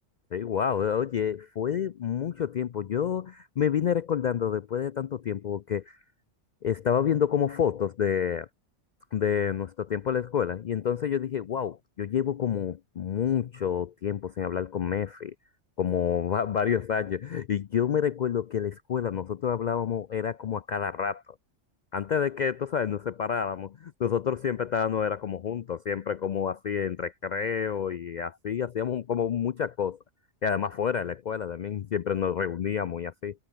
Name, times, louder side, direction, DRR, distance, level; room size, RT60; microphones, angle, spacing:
voice 1, 0.3-6.0 6.6-8.5 9.1-15.3 15.8-21.2 21.9-30.0 30.4-33.3, left 8 dB, 60° left, 0.5 m, -28 dB
omnidirectional pair, 1.2 m